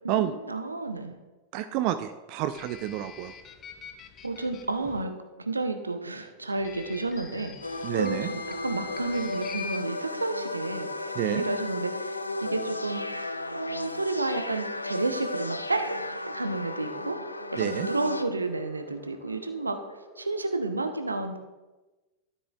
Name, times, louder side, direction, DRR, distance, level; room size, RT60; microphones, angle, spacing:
voice 1, 0.0-1.2 4.2-5.1 5.4-17.2 17.5-19.8 20.2-21.4, right 3 dB, 80° right, 7 dB, 0.7 m, -31 dB
voice 2, 1.5-3.3 7.8-8.3 11.2-11.4 17.6-17.9, right 12 dB, 45° right, 11 dB, 0.4 m, -29 dB
sound 1, 2.5-5.0 6.6-9.8, left 6 dB, 30° left, 0.6 m, -44 dB
sound 2, 3.4-20.7, left 1 dB, 45° left, 2.9 m, -51 dB
sound 3, 7.6-18.2, left 2 dB, 85° left, 0.4 m, -35 dB
12.5 x 7.2 x 2.4 m, 1.1 s
figure-of-eight pair, 90°, 0 cm